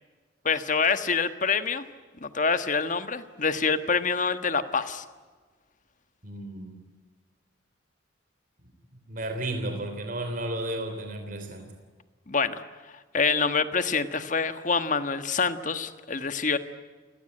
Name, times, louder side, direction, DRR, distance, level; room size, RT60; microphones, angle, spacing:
voice 1, 0.4-1.8 2.2-5.0 12.3-12.6 13.1-16.6, left 5 dB, 40° left, 10 dB, 1.4 m, -26 dB
voice 2, 6.2-6.7 9.1-11.7, right 1 dB, 45° right, 5 dB, 3.3 m, -33 dB
29.5 x 18.0 x 9.9 m, 1.4 s
head